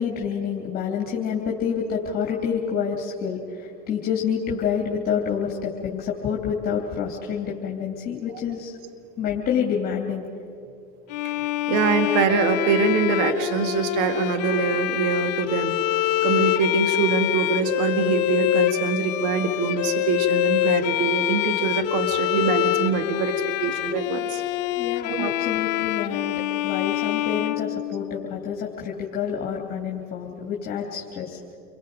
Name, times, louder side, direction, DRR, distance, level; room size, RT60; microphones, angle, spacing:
voice 1, 0.0-8.8 9.2-10.3 24.8-31.4, left 7 dB, 45° left, -2 dB, 3.2 m, -28 dB
Bowed string instrument, 11.1-28.3, left 15 dB, 75° left, 0.9 m, -25 dB
voice 2, 11.7-15.7 16.2-24.4 25.1-25.3, right 4 dB, 75° right, 7 dB, 1.8 m, -24 dB
28.5 x 23.0 x 5.1 m, 2.5 s
supercardioid pair, 85°, 21 cm